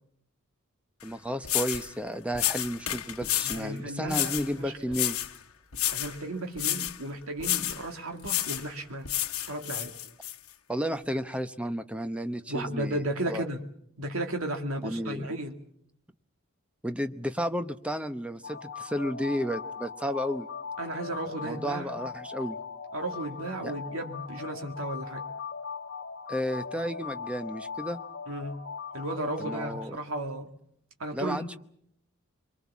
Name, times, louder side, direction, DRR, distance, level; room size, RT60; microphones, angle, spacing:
sound 1, 1.0-1.1 1.4-1.9 2.3-3.6 4.1-4.5 4.9-5.4 5.7-6.2 6.6-7.0 7.4-7.8 8.2-8.7 9.0-10.3, left 13 dB, 75° left, 1.2 m, -30 dB
voice 1, 1.0-5.2 10.7-13.4 14.8-15.4 16.8-20.5 21.4-22.6 23.6-23.7 26.3-28.0 29.4-30.0 31.1-31.6, equal, 5° right, 10 dB, 0.9 m, -32 dB
voice 2, 3.4-4.7 5.9-9.1 9.5-9.9 12.5-13.6 14.0-15.6 20.8-21.9 22.9-25.2 28.3-28.6 28.9-30.5 31.0-31.6, right 1 dB, 70° right, 4 dB, 2.2 m, -34 dB
sound 2, 18.4-29.8, left 5 dB, 60° left, 1.5 m, -40 dB
24.5 x 23.5 x 7.3 m, 0.69 s
head